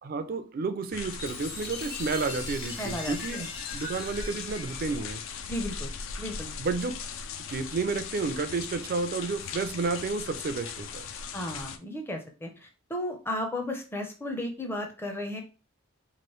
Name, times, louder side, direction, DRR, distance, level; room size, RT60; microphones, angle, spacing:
voice 1, 0.0-5.2 6.6-7.0 7.5-11.1, right 4 dB, 45° right, 0.3 m, -31 dB
sound 1, 0.9-11.8, left 6 dB, 65° left, 0.4 m, -39 dB
Chime, 1.2-5.9, left 2 dB, 50° left, 1.2 m, -42 dB
voice 2, 2.8-3.4 5.5-5.9 6.2-6.5 11.3-15.4, left 1 dB, 10° left, 0.5 m, -34 dB
3.1 x 2.5 x 3.0 m
head